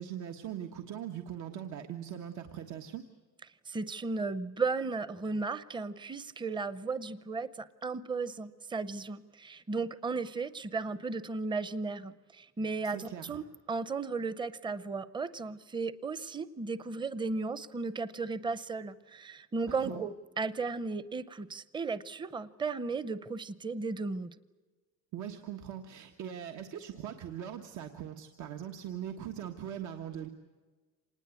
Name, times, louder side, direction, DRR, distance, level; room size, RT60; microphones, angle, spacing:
voice 1, 0.0-3.0 12.8-13.4 19.7-20.0 25.1-30.3, right 9 dB, 80° right, 4 dB, 1.5 m, -41 dB
voice 2, 3.7-24.3, right 4 dB, 15° right, 15 dB, 0.7 m, -35 dB
26.5 x 20.0 x 8.3 m, 1.3 s
cardioid pair, 165°, 29 cm